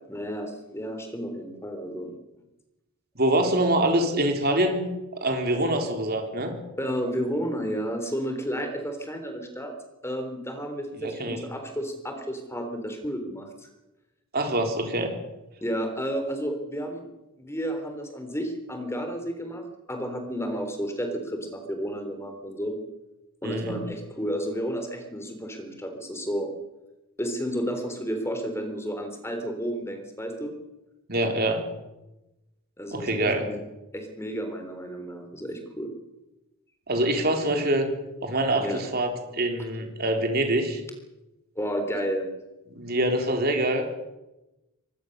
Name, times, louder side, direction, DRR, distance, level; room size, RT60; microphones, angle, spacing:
voice 1, 0.1-2.1 6.8-9.7 10.0-13.7 15.6-17.0 17.4-22.8 23.4-26.5 27.2-30.5 32.8-33.6 33.9-35.9 38.6-38.8 41.6-42.3, equal, 10° left, 5 dB, 3.7 m, -32 dB
voice 2, 3.2-4.8 5.2-6.5 11.0-11.4 14.3-15.1 23.4-23.8 31.1-31.6 32.9-33.5 36.9-37.9 38.2-40.8 42.8-43.9, right 1 dB, 45° right, 4 dB, 3.8 m, -25 dB
24.5 x 19.5 x 6.8 m, 1.0 s
head